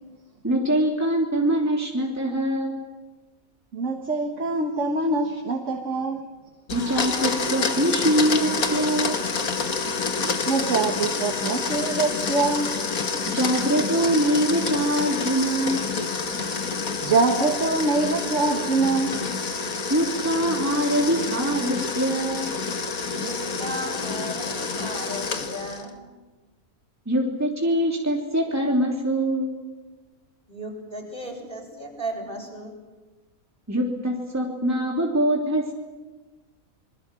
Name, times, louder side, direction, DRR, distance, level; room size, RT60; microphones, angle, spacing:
voice 1, 0.4-2.8 6.7-9.2 13.3-15.9 19.9-22.5 27.1-29.5 33.7-35.7, right 1 dB, 10° right, -1 dB, 3.2 m, -23 dB
voice 2, 3.7-6.2 10.5-12.7 17.0-19.2, right 3 dB, 60° right, 4 dB, 1.9 m, -24 dB
Domestic sounds home sounds, 6.7-25.9, left 4 dB, 75° left, 2.1 m, -28 dB
voice 3, 23.1-25.9 30.5-32.7, right 1 dB, 35° right, 0 dB, 7.4 m, -35 dB
27.5 x 22.0 x 7.7 m, 1.2 s
omnidirectional pair, 1.5 m